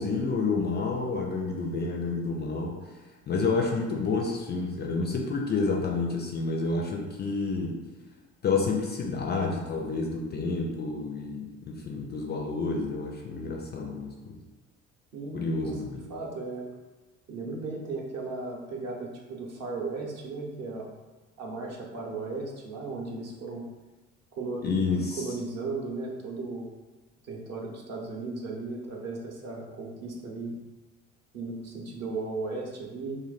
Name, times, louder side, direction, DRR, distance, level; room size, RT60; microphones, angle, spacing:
voice 1, 0.0-2.7 3.3-7.8 8.4-14.4 15.3-16.1 24.6-25.2, left 4 dB, 30° left, 1 dB, 0.4 m, -29 dB
voice 2, 15.1-16.7 17.3-20.9 21.4-23.7 24.4-26.7 27.2-30.6 31.3-33.2, right 3 dB, 45° right, -1 dB, 0.8 m, -36 dB
2.5 x 2.1 x 3.9 m, 1.2 s
figure-of-eight pair, 50°, 37 cm